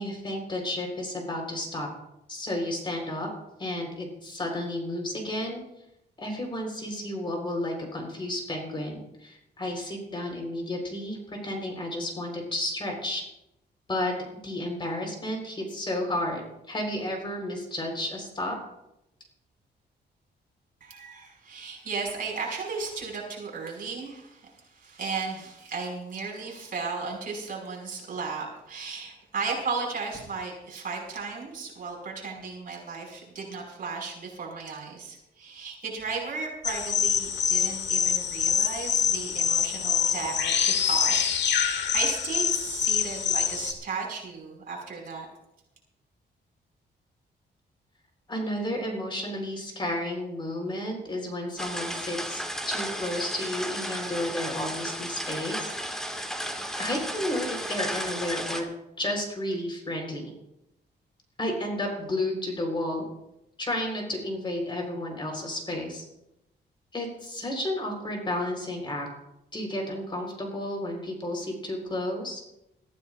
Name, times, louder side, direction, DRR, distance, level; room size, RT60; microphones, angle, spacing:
voice 1, 0.0-1.9 2.3-3.3 3.6-5.6 6.2-13.2 13.9-18.6 48.3-55.7 56.8-58.7 59.0-60.2 61.4-63.1 63.6-66.0 66.9-69.1 69.5-72.4, left 1 dB, 25° left, 1 dB, 4.1 m, -32 dB
voice 2, 20.8-45.3, right 4 dB, 50° right, -1 dB, 5.5 m, -35 dB
sound 1, 36.6-43.7, left 7 dB, 75° left, 1.3 m, -25 dB
sound 2, 51.6-58.6, equal, 5° left, 1.9 m, -34 dB
23.5 x 15.0 x 2.5 m, 0.86 s
wide cardioid pair, 145°, 19 cm